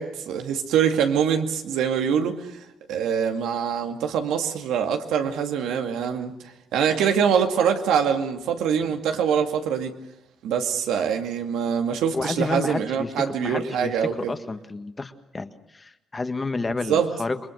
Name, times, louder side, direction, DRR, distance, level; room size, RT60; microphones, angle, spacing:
voice 1, 0.0-2.6 2.9-6.3 6.7-9.9 10.4-14.3 16.9-17.1, right 7 dB, 90° right, 5 dB, 2.3 m, -24 dB
voice 2, 12.1-17.4, left 3 dB, 25° left, 9 dB, 1.6 m, -30 dB
27.5 x 21.5 x 6.5 m, 0.89 s
cardioid pair, 90°, 0 cm